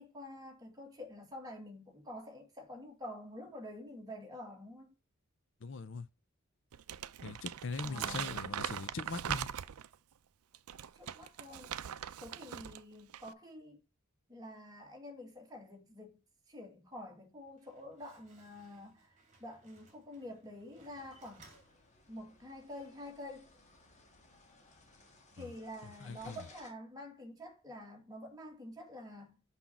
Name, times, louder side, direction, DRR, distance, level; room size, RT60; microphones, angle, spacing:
voice 1, 0.0-4.9 7.8-8.6 10.9-11.8 12.2-13.8 14.3-16.2 16.5-21.5 22.1-23.5 25.3-29.4, left 1 dB, 15° right, 1.9 m, -48 dB
voice 2, 5.6-6.1 7.2-9.5 25.4-25.5 26.0-26.4, left 4 dB, 55° left, 0.6 m, -41 dB
Crumpling crinkling, 6.7-9.9 10.5-12.8 13.1-13.3, right 9 dB, 90° right, 0.5 m, -40 dB
Slam, 17.3-22.5, right 3 dB, 30° right, 2.5 m, -64 dB
sound 1, 20.8-26.7, left 2 dB, 30° left, 1.5 m, -62 dB
6.1 x 5.7 x 4.2 m
head